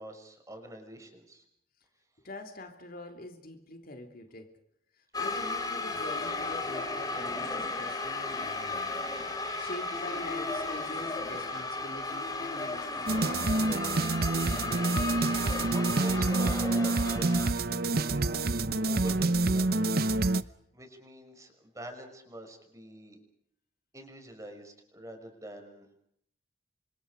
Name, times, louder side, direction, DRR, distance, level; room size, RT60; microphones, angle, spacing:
voice 1, 0.0-1.4 15.6-18.2 18.8-19.9 20.7-23.2 23.9-26.0, right 1 dB, 20° right, 6.0 m, -46 dB
voice 2, 2.2-4.6 5.0-9.1 9.6-13.7, left 1 dB, 55° left, 3.0 m, -45 dB
sound 1, 5.1-17.5, left 3 dB, 25° left, 4.0 m, -35 dB
sound 2, 13.1-20.4, right 2 dB, 60° right, 0.9 m, -27 dB
30.0 x 26.0 x 5.1 m
head